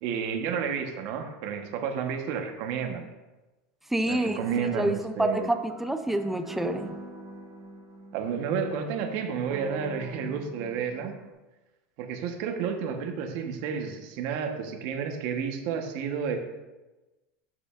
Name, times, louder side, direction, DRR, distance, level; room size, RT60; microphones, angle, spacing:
voice 1, 0.0-3.1 4.1-5.5 8.1-11.1 12.0-16.4, right 7 dB, 60° right, 4 dB, 1.2 m, -31 dB
voice 2, 3.9-6.9, right 1 dB, 5° right, 8 dB, 0.5 m, -28 dB
sound 1, 4.2-11.3, right 2 dB, 20° right, 1.5 m, -45 dB
12.5 x 5.0 x 2.5 m, 1.1 s
supercardioid pair, 135°, 6 cm